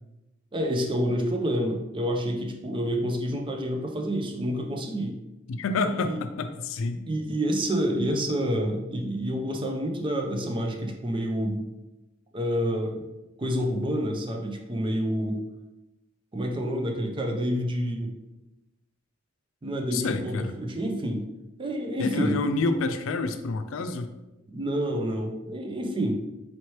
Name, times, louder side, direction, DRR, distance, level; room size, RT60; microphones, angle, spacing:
voice 1, 0.5-5.1 5.8-6.2 7.1-11.6 12.3-13.1 13.4-15.4 16.3-18.1 19.6-21.2 21.6-22.4 24.5-26.1, equal, 25° right, 2 dB, 0.5 m, -28 dB
voice 2, 5.5-7.0 19.9-20.5 22.0-24.1, left 3 dB, 85° left, 9 dB, 0.4 m, -28 dB
4.2 x 2.9 x 3.1 m, 0.99 s
head